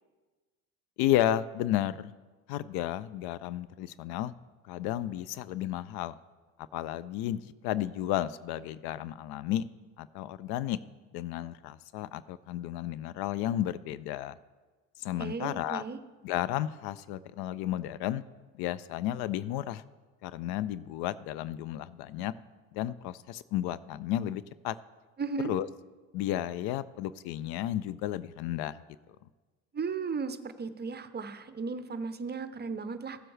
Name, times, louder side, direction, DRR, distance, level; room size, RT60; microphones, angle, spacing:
voice 1, 1.0-2.1 2.5-4.3 4.6-6.1 6.7-9.6 10.0-10.8 11.1-14.4 15.0-15.8 16.2-18.2 18.5-19.8 20.2-22.3 22.7-24.8 25.5-25.7 26.1-28.8, left 12 dB, 65° left, 17 dB, 0.5 m, -32 dB
voice 2, 15.2-16.0 25.2-25.5 29.7-33.2, right 5 dB, 25° right, 11 dB, 0.7 m, -35 dB
15.5 x 7.6 x 3.3 m, 1.3 s
hypercardioid pair, 70°, 41 cm